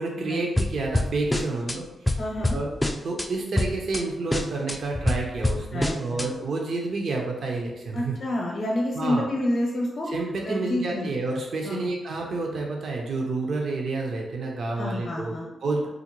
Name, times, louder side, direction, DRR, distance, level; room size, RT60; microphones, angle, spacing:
voice 1, 0.0-2.2 2.5-2.7 3.0-8.2 8.9-9.3 10.1-15.3 15.6-15.9, right 3 dB, 65° right, 0 dB, 0.6 m, -29 dB
sound 1, 0.6-1.8 2.1-3.3 3.6-4.0 4.3-6.3, left 1 dB, 15° left, 0.3 m, -26 dB
voice 2, 2.2-2.6 5.7-6.4 7.9-10.1 10.4-11.1 11.6-11.9 14.8-15.5, left 1 dB, 50° left, -2 dB, 0.6 m, -29 dB
3.7 x 2.1 x 3.0 m, 0.99 s
cardioid pair, 75°, 0 cm